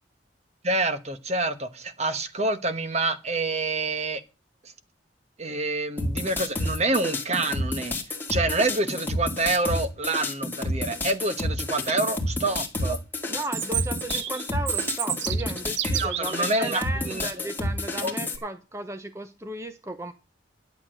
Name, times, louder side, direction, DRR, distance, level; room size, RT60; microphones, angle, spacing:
voice 1, 0.6-4.2 4.6-4.7 5.4-8.0 8.3-13.0 16.0-17.5 18.0-18.1, right 2 dB, 35° right, 1.1 m, -27 dB
sound 1, 6.0-18.4, left 1 dB, 10° left, 2.1 m, -30 dB
voice 2, 13.3-20.1, right 1 dB, 15° right, 0.7 m, -35 dB
Chirp tweet, 13.4-16.4, right 11 dB, 75° right, 0.8 m, -30 dB
11.5 x 8.2 x 6.3 m
head